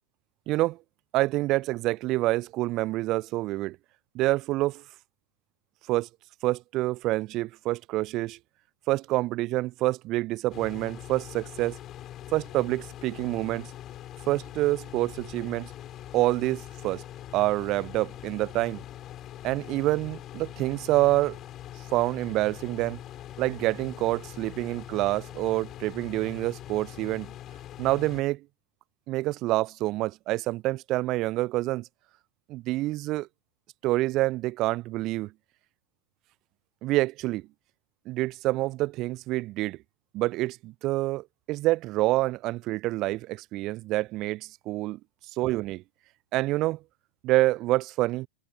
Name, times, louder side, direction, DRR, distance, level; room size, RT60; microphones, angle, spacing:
voice 1, 0.5-0.8 1.1-3.8 4.1-4.8 5.9-6.1 6.4-8.4 8.9-11.7 12.3-13.7 14.3-15.7 16.1-17.0 17.3-18.8 19.4-21.4 21.9-23.0 23.4-27.3 27.8-28.4 29.1-31.9 32.5-33.3 33.8-35.3 36.8-37.5 38.1-39.8 40.1-45.0 45.4-45.8 46.3-46.8 47.2-48.3, right 18 dB, 40° right, 0.9 m, -27 dB
sound 1, 10.5-28.2, left 12 dB, 30° left, 7.2 m, -43 dB
figure-of-eight pair, 90°, 0 cm